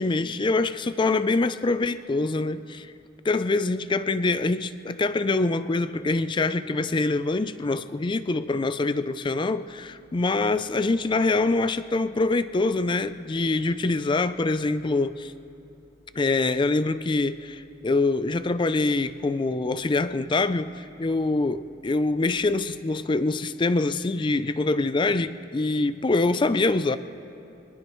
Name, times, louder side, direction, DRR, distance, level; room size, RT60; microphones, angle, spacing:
voice 1, 0.0-2.9 3.2-15.3 16.1-27.0, left 3 dB, 25° left, 13 dB, 0.4 m, -25 dB
sound 1, 9.7-22.4, right 1 dB, 90° right, 2.2 m, -62 dB
23.0 x 20.0 x 3.1 m, 2.7 s
head